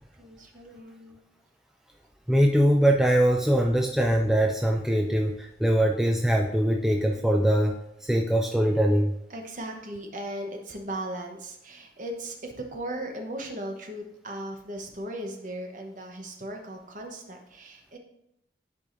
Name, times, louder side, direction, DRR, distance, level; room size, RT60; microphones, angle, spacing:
voice 1, 0.2-1.2 9.3-18.0, right 1 dB, 40° right, 2 dB, 0.9 m, -37 dB
voice 2, 2.3-9.1, equal, ahead, 1 dB, 0.3 m, -22 dB
10.5 x 4.8 x 2.6 m, 0.80 s
head